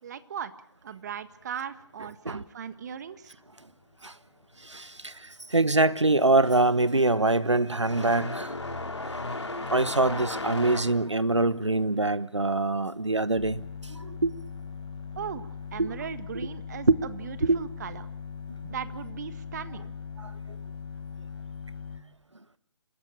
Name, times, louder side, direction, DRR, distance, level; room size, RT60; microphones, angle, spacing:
voice 1, 0.0-0.5 0.8-3.4 15.1-18.1 18.7-20.0, right 8 dB, 40° right, 1.6 m, -38 dB
voice 2, 4.7-5.1 5.5-8.6 9.7-13.6 13.9-14.3 15.8-15.9 17.4-17.6 20.2-20.3, right 2 dB, 90° right, 1.2 m, -24 dB
sound 1, 5.3-5.6 5.9-14.2 14.5-15.6 16.5-16.6 17.5-17.6 19.3-19.4, left 2 dB, 80° left, 3.3 m, -37 dB
sound 2, 13.3-22.0, left 5 dB, 60° left, 5.6 m, -40 dB
27.0 x 16.5 x 8.9 m
figure-of-eight pair, 145°, 15 cm